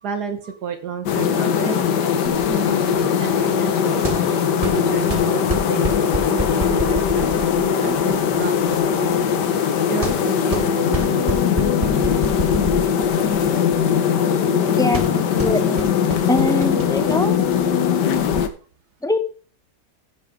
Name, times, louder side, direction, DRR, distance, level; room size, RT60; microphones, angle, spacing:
voice 1, 0.0-9.2 9.8-11.3, right 6 dB, 70° right, 6 dB, 1.7 m, -32 dB
sound 1, 1.1-18.5, left 7 dB, 85° left, 1.6 m, -20 dB
sound 2, 2.2-18.4, right 1 dB, 25° right, 1.3 m, -31 dB
voice 2, 15.3-15.9 16.3-17.4 19.0-19.2, left 2 dB, 5° left, 9 dB, 0.5 m, -22 dB
15.5 x 6.8 x 3.7 m, 0.41 s
omnidirectional pair, 1.8 m